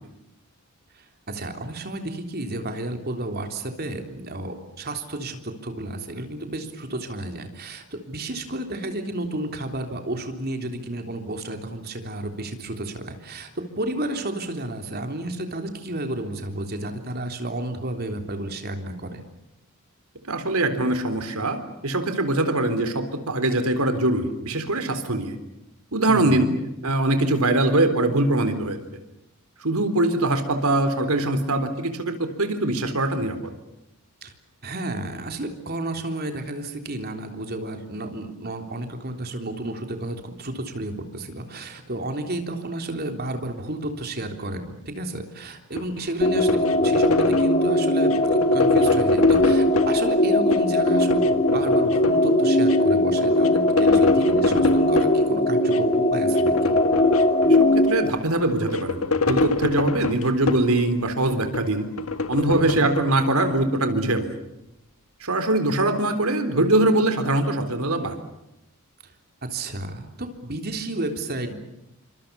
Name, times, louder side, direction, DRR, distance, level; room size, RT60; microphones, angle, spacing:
voice 1, 1.3-13.5 13.8-19.2 26.1-26.6 34.2-34.3 34.6-56.7 62.5-62.9 69.4-71.6, right 1 dB, 45° right, 5 dB, 3.6 m, -31 dB
voice 2, 20.2-25.4 25.9-26.5 26.8-28.8 29.6-33.5 57.4-61.9 62.3-64.3 65.2-68.2, right 2 dB, 75° right, 9 dB, 3.9 m, -22 dB
sound 1, 45.8-47.6 48.1-50.0 50.4-52.3 52.7-52.8 53.0-55.2 55.7-56.0 56.3-57.9 58.4-60.8 61.3-63.6, left 3 dB, 70° left, 1.9 m, -26 dB
sound 2, 46.2-58.1, left 1 dB, 35° left, 2.7 m, -20 dB
28.0 x 25.5 x 7.0 m, 0.90 s
head